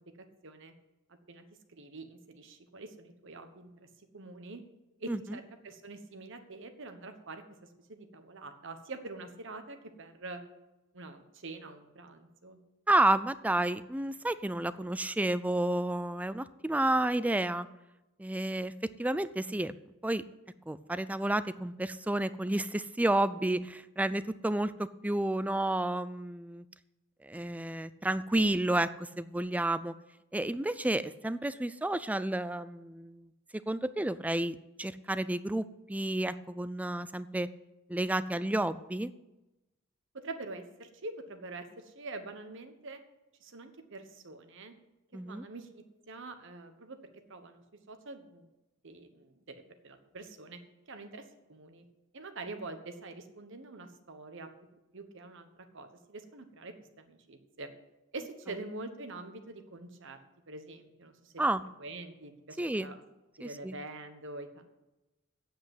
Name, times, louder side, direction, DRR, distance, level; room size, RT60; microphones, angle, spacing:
voice 1, 0.2-0.7 1.1-3.9 4.1-4.6 5.0-10.4 10.9-12.6 40.1-43.0 43.4-44.7 45.3-47.0 47.3-48.5 48.8-50.6 50.9-51.2 51.5-51.8 52.1-54.5 54.9-55.5 55.7-57.7 58.1-60.2 60.5-61.3 61.8-62.9 63.4-64.6, right 2 dB, 65° right, 7 dB, 1.2 m, -45 dB
voice 2, 12.9-17.7 18.2-18.7 19.0-19.7 20.0-20.2 20.7-26.6 27.2-29.9 30.3-33.3 33.7-37.5 37.9-39.1 45.1-45.4 61.4-61.6 62.6-62.9 63.4-63.7, right 1 dB, 5° right, 15 dB, 0.4 m, -31 dB
8.7 x 7.9 x 9.2 m, 0.98 s
head